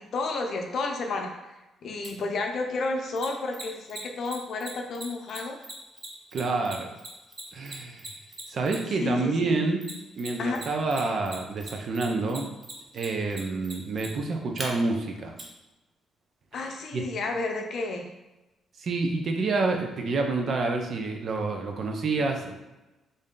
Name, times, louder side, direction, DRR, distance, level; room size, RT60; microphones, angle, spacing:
voice 1, 0.0-5.6 9.0-9.7 10.4-10.6 16.5-18.1, left 3 dB, 60° left, 3 dB, 0.6 m, -31 dB
Mechanisms, 2.0-2.1 3.2-9.0 9.8-10.6 10.9-14.7 15.4-15.5, right 2 dB, 30° right, 0.8 m, -39 dB
voice 2, 6.3-6.9 7.5-8.1 8.5-9.8 10.2-12.5 12.9-15.4 16.9-17.0 18.8-22.5, right 3 dB, 55° right, 3 dB, 0.6 m, -28 dB
3.2 x 2.7 x 3.7 m, 1.0 s
cardioid pair, 90°, 0 cm